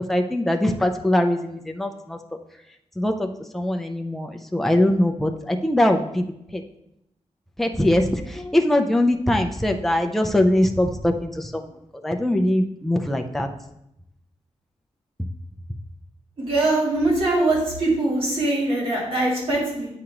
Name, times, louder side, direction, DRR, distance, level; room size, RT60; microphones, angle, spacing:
voice 1, 0.1-2.2 3.0-3.3 3.5-6.2 6.5-6.6 7.6-11.6 12.0-13.5, left 1 dB, ahead, 3 dB, 0.4 m, -22 dB
voice 2, 16.4-19.9, right 2 dB, 50° right, -6 dB, 2.5 m, -22 dB
8.5 x 5.0 x 2.9 m, 0.81 s
wide cardioid pair, 160°, 12 cm